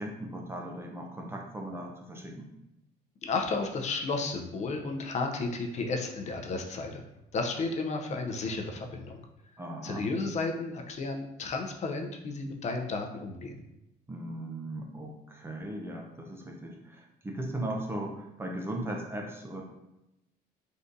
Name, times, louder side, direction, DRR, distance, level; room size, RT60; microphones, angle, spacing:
voice 1, 0.0-2.5 9.6-10.1 14.1-19.6, right 1 dB, 15° right, 0 dB, 0.5 m, -38 dB
voice 2, 3.2-7.0 7.3-9.2 9.8-13.6, left 3 dB, 45° left, 3 dB, 0.5 m, -33 dB
3.5 x 2.6 x 2.5 m, 0.89 s
cardioid pair, 110°, 17 cm